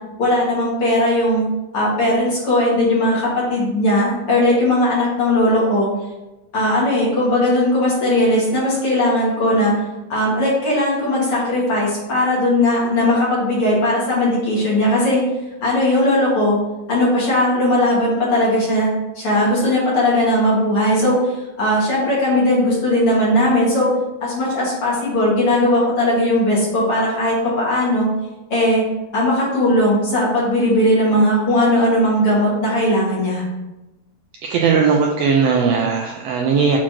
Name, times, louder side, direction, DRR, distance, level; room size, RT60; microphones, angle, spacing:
voice 1, 0.2-1.4 1.7-5.9 6.5-9.7 10.1-15.2 15.6-16.6 16.9-23.9 24.2-28.1 28.5-28.8 29.1-33.4, left 1 dB, 45° left, -6 dB, 3.0 m, -18 dB
voice 2, 34.4-36.8, right 5 dB, 90° right, 1 dB, 1.4 m, -18 dB
7.3 x 4.5 x 4.5 m, 1.0 s
omnidirectional pair, 3.7 m